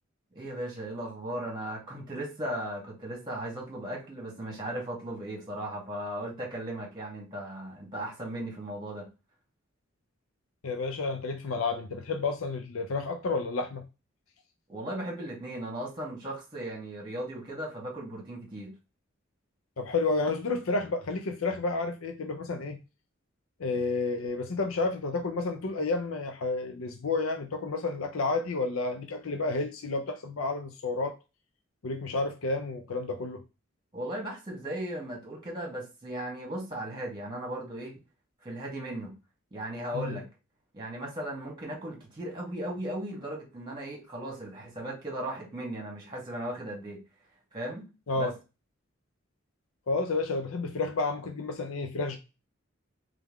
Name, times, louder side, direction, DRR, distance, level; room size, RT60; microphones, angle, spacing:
voice 1, 0.3-9.1 14.7-18.7 33.9-37.9 38.4-39.1 39.5-40.2 40.7-47.0 47.5-47.8 48.1-48.3, right 1 dB, 20° right, 1.7 m, -37 dB
voice 2, 10.6-13.8 19.8-22.8 23.6-31.1 31.8-33.4 39.9-40.2 48.1-48.3 49.9-52.2, left 3 dB, 85° left, 0.6 m, -30 dB
3.4 x 3.4 x 3.5 m
head